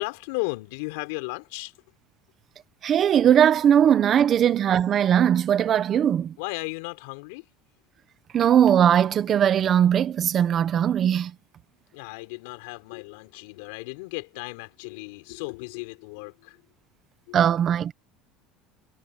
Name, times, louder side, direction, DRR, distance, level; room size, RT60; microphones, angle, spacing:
voice 1, 0.0-1.7 6.4-7.5 11.9-16.6 17.3-17.5, left 26 dB, 80° left, 4.6 m, -35 dB
voice 2, 2.8-6.3 8.3-11.3 17.3-17.9, right 9 dB, 30° right, 1.3 m, -20 dB
cardioid pair, 155°, 0 cm